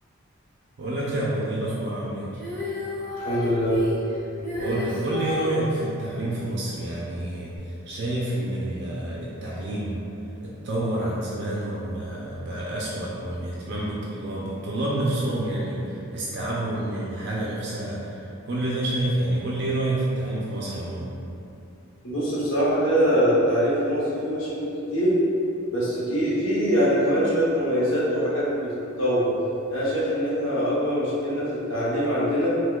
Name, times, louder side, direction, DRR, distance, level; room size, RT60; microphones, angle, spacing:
voice 1, 0.8-2.4 4.6-9.9 10.4-21.1, right 1 dB, 50° right, -5 dB, 0.4 m, -28 dB
Female singing, 2.3-5.6 7.6-7.7, left 2 dB, 10° left, 0.6 m, -31 dB
voice 2, 3.2-3.8 22.0-25.1 25.7-29.3 29.7-32.5, equal, 65° left, -8 dB, 0.9 m, -23 dB
4.3 x 2.1 x 2.3 m, 2.6 s
head